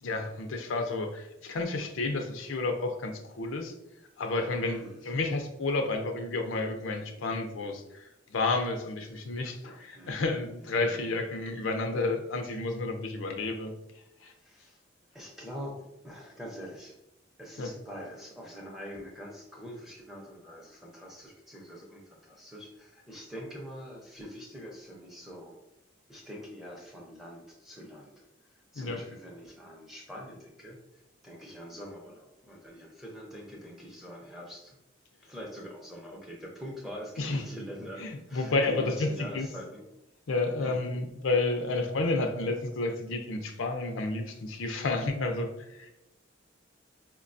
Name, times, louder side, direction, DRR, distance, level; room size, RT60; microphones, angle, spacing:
voice 1, 0.0-3.7 4.2-13.7 14.2-14.3 17.6-17.7 28.8-29.0 37.2-37.4 38.0-39.5 40.3-45.9, left 3 dB, 90° left, 4 dB, 0.5 m, -31 dB
voice 2, 4.7-5.0 9.9-11.2 14.4-14.8 15.1-17.0 17.4-25.6 26.1-28.2 28.7-30.8 31.2-34.8 35.2-39.8 40.6-40.8, equal, ahead, -2 dB, 0.5 m, -44 dB
4.6 x 2.2 x 2.5 m, 0.87 s
head